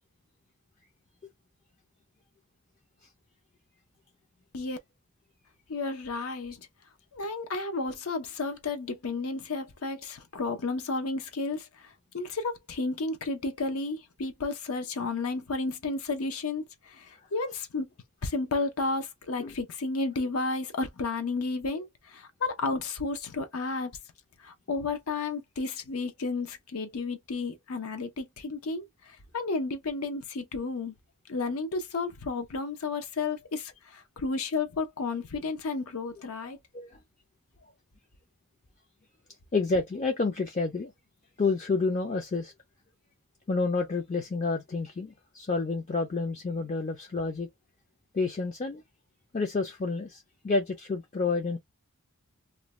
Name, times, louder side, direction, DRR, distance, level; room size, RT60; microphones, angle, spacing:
voice 1, 5.7-6.7 7.1-17.9 18.2-24.0 24.4-30.9 31.3-36.6, left 3 dB, 75° left, 0.6 m, -32 dB
voice 2, 39.5-40.9 41.4-42.5 43.5-47.5 48.1-48.8 49.3-51.6, left 3 dB, 35° left, 0.4 m, -29 dB
2.5 x 2.1 x 3.0 m
head